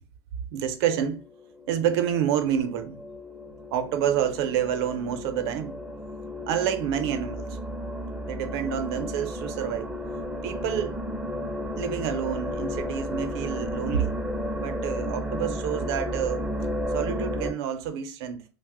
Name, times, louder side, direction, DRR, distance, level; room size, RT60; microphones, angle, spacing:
voice 1, 0.5-1.2 1.7-3.0 3.7-5.8 6.5-7.6 8.3-9.9 10.4-11.0 11.8-14.2 14.6-16.5 16.9-18.5, right 9 dB, 70° right, 0.5 m, -28 dB
sound 1, 0.8-17.5, equal, 5° right, 0.4 m, -33 dB
2.8 x 2.0 x 3.4 m
supercardioid pair, 145°, 14 cm